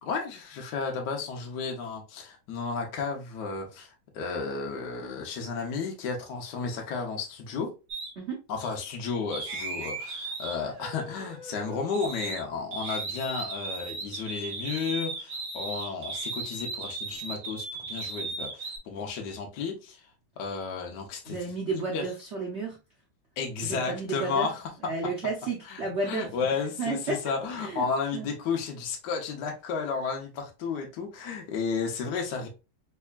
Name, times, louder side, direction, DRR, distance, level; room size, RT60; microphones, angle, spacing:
voice 1, 0.0-7.7 8.5-20.1 20.4-21.4 21.9-22.1 23.4-24.7 25.7-32.5, left 5 dB, 65° left, 1.2 m, -33 dB
sound 1, 7.9-8.1 9.3-12.4 12.7-18.8, right 3 dB, 55° right, 1.6 m, -36 dB
voice 2, 21.3-22.8 23.7-24.5 24.8-26.3 26.8-27.2 27.6-27.9 28.1-28.3, right 3 dB, 80° right, 0.6 m, -32 dB
3.6 x 3.3 x 2.3 m
omnidirectional pair, 2.3 m